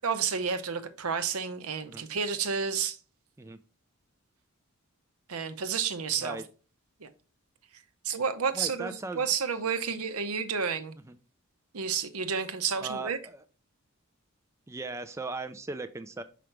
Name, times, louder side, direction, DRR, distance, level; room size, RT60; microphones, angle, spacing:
voice 1, 0.0-3.0 5.3-6.4 7.0-7.1 8.0-10.9 11.7-13.2, right 6 dB, 80° right, 0.8 m, -30 dB
voice 2, 8.5-9.3 11.1-11.2 12.8-13.4 14.7-16.2, right 3 dB, 15° right, 0.3 m, -38 dB
5.8 x 5.0 x 3.2 m
head